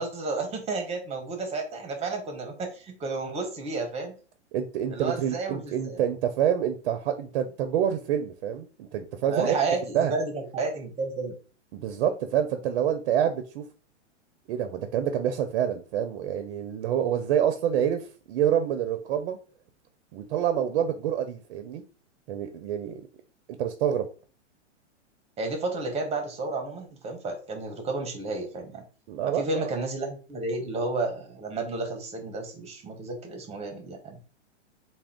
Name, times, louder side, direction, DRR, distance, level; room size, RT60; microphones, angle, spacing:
voice 1, 0.0-4.1 4.9-6.0 9.3-11.4 25.4-28.8 29.2-34.2, right 3 dB, 15° right, 4 dB, 0.9 m, -31 dB
voice 2, 4.5-9.6 9.9-10.1 11.7-13.6 14.5-19.4 20.1-21.8 22.3-23.1 23.6-24.1 29.1-29.7, right 9 dB, 50° right, 7 dB, 0.6 m, -27 dB
3.5 x 2.3 x 3.5 m, 0.37 s
hypercardioid pair, 125°, 36 cm